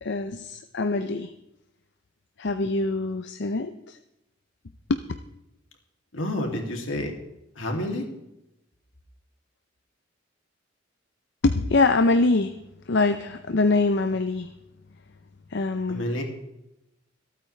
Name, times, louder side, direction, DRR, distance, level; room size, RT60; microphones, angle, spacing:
voice 1, 0.0-1.3 2.4-4.0 4.9-5.0 11.4-12.6 12.9-14.5 15.5-16.1, left 3 dB, 60° left, 8 dB, 0.6 m, -24 dB
voice 2, 6.1-7.1 7.6-8.1 15.9-16.2, left 1 dB, 80° left, 2 dB, 2.7 m, -29 dB
26.0 x 8.8 x 3.3 m, 0.89 s
head